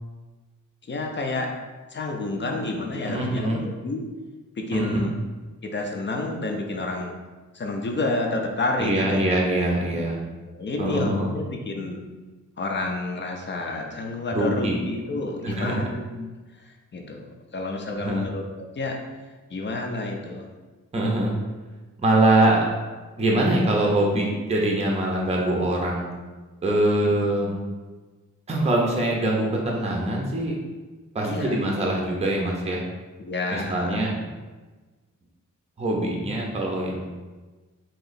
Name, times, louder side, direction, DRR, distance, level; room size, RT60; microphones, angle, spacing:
voice 1, 0.9-1.6 1.9-4.0 4.6-5.1 5.6-7.1 7.5-9.3 10.0-12.0 12.6-16.3 16.6-19.0 19.5-20.5 27.0-27.6 31.2-31.6 33.2-34.2, left 2 dB, 35° left, 2 dB, 0.4 m, -30 dB
voice 2, 3.0-3.6 4.7-5.1 8.8-10.2 10.8-11.3 14.3-14.8 15.4-15.7 18.0-18.3 20.9-21.3 22.0-22.7 23.2-26.1 26.6-27.6 28.5-30.6 31.1-32.8 33.5-34.1 35.8-37.0, right 1 dB, 20° right, -2 dB, 0.5 m, -23 dB
3.0 x 2.8 x 4.0 m, 1.3 s
wide cardioid pair, 165°, 32 cm